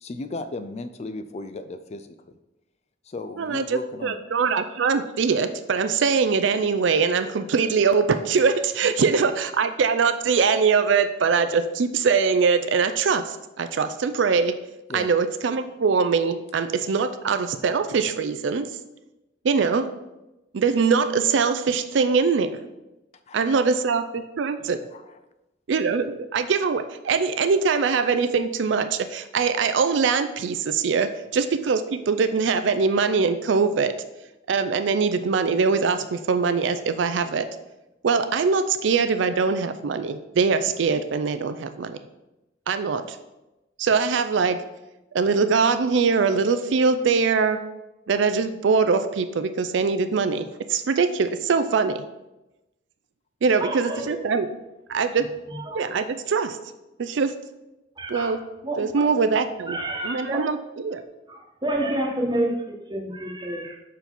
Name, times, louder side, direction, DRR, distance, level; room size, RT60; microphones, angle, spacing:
voice 1, 0.0-2.4 3.0-4.2 14.9-15.1 23.3-23.5 24.9-25.2, left 2 dB, 35° left, 11 dB, 0.3 m, -36 dB
voice 2, 3.4-14.6 14.9-18.7 19.4-19.9 20.5-22.5 23.3-24.8 25.7-33.9 34.5-37.5 38.0-42.0 42.7-43.2 43.8-44.6 45.1-47.6 48.1-52.0 53.4-54.5 54.9-55.2 55.7-56.6 57.0-57.3 58.1-58.4 58.8-59.8 60.0-60.6 60.8-61.0, right 5 dB, 65° right, 10 dB, 0.4 m, -22 dB
voice 3, 53.6-54.2 55.5-55.8 58.0-59.1 59.7-60.4 61.3-63.8, right 1 dB, 25° right, 1 dB, 1.1 m, -29 dB
5.2 x 4.7 x 5.9 m, 0.98 s
head